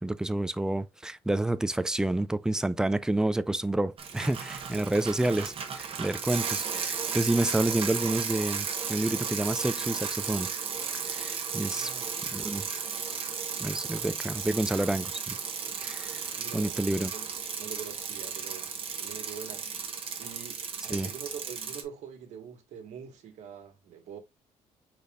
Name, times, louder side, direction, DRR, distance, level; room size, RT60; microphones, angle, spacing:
voice 1, 0.0-10.5 11.1-11.9 12.3-12.7 13.6-15.4 15.8-16.2 16.5-17.1 20.9-21.1, right 1 dB, 5° right, 0.3 m, -29 dB
Bicycle, 4.0-21.8, right 6 dB, 50° right, 1.1 m, -34 dB
voice 2, 4.7-5.1 11.7-12.6 16.3-17.3 17.6-19.9 20.2-24.2, right 7 dB, 80° right, 1.4 m, -45 dB
5.1 x 4.2 x 2.4 m
cardioid pair, 130°, 12 cm